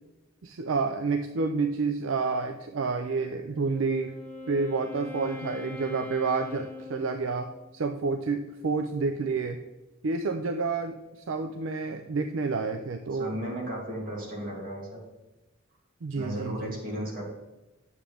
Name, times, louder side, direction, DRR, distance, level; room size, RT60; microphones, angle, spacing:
voice 1, 0.4-4.2 4.5-9.6 10.0-13.4 16.0-16.8, right 4 dB, 70° right, 7 dB, 0.5 m, -29 dB
Wind instrument woodwind instrument, 3.4-7.7, left 3 dB, 10° left, 1.3 m, -41 dB
voice 2, 13.1-15.0 16.1-17.2, equal, 45° right, -3 dB, 2.8 m, -35 dB
9.5 x 7.3 x 3.5 m, 1.0 s
head